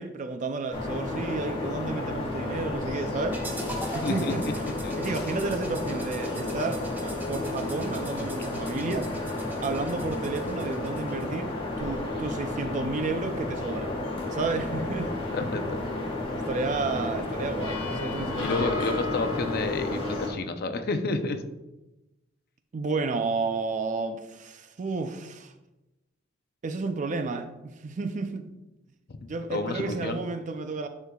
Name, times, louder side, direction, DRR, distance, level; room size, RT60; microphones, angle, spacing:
voice 1, 0.0-3.4 3.8-4.7 5.0-9.1 9.6-13.9 14.3-15.1 16.3-19.0 22.7-25.5 26.6-28.5 29.3-30.9, right 3 dB, 40° right, 0.4 m, -32 dB
sound 1, 0.7-20.3, left 2 dB, 30° left, 1.4 m, -32 dB
sound 2, 3.3-11.4, right 1 dB, 10° right, 0.9 m, -42 dB
voice 2, 3.8-4.5 4.8-5.2 15.3-15.8 18.4-21.4 29.1-29.2 29.5-30.2, left 3 dB, 55° left, 0.6 m, -30 dB
10.0 x 4.5 x 2.3 m
head